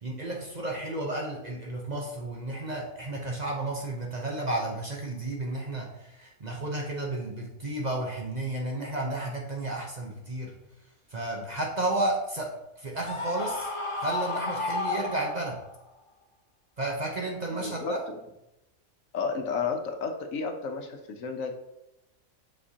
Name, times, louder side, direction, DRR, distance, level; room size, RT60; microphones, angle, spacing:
voice 1, 0.0-10.5 11.1-12.5 12.8-13.7 14.0-15.6 16.8-18.0, right 2 dB, 40° right, 0 dB, 0.8 m, -32 dB
Screaming, 13.0-15.7, left 3 dB, 35° left, 0.5 m, -32 dB
voice 2, 17.5-18.1 19.1-21.6, left 5 dB, 75° left, 5 dB, 1.2 m, -32 dB
7.4 x 5.3 x 2.8 m, 0.89 s
omnidirectional pair, 1.4 m